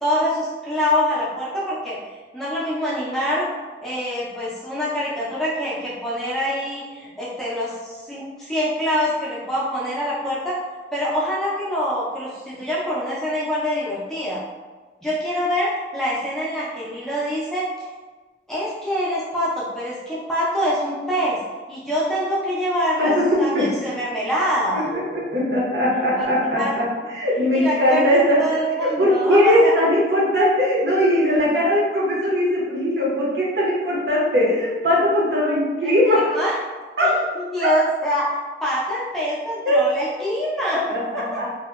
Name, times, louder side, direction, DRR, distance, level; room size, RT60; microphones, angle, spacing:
voice 1, 0.0-2.0 2.3-3.5 3.8-10.6 10.9-14.4 15.0-17.7 18.5-21.4 21.7-24.9 26.2-26.3 26.6-26.7 27.5-29.7 35.8-36.6 37.0-38.3 38.6-40.8 41.1-41.5, equal, ahead, -8 dB, 0.4 m, -25 dB
voice 2, 23.0-23.6 24.7-26.6 27.1-28.4 29.0-36.4 37.0-37.1 37.6-37.7 39.6-39.7 40.7-41.5, left 1 dB, 70° right, -5 dB, 0.7 m, -20 dB
2.7 x 2.1 x 2.3 m, 1.3 s
head